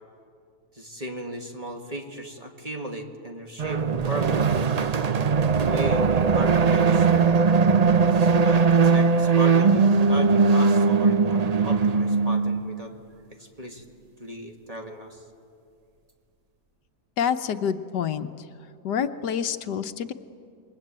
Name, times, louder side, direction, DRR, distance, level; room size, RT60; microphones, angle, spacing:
voice 1, 0.7-4.7 5.4-7.3 8.1-12.9 13.4-13.9 14.2-15.2, equal, 20° right, 3 dB, 2.1 m, -36 dB
sound 1, 3.6-12.8, right 5 dB, 90° right, 0.3 m, -20 dB
voice 2, 17.2-18.3 18.8-20.1, left 8 dB, 80° left, 10 dB, 1.5 m, -27 dB
28.0 x 22.0 x 9.0 m, 2.3 s
omnidirectional pair, 1.8 m